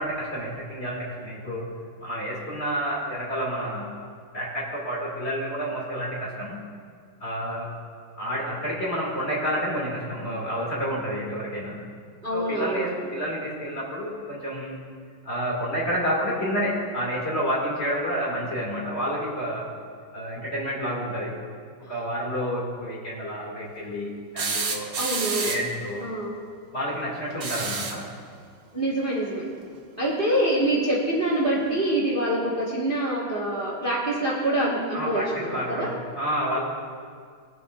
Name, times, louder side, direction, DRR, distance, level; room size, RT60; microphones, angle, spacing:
voice 1, 0.0-1.7 2.0-3.9 4.3-6.6 7.2-7.8 8.2-11.8 12.3-14.8 15.2-19.8 20.1-21.4 21.9-24.9 25.4-26.0 26.7-28.1 34.9-35.9 36.2-36.6, equal, 30° left, -6 dB, 2.3 m, -29 dB
voice 2, 12.2-13.0 25.0-25.5 26.0-26.4 28.7-29.4 30.0-35.9, right 1 dB, 30° right, -5 dB, 1.4 m, -25 dB
sound 1, 24.4-25.8 27.3-28.1 29.7-29.8 31.3-31.4, right 4 dB, 55° right, 0.9 m, -29 dB
21.5 x 7.6 x 2.4 m, 2.1 s
omnidirectional pair, 2.4 m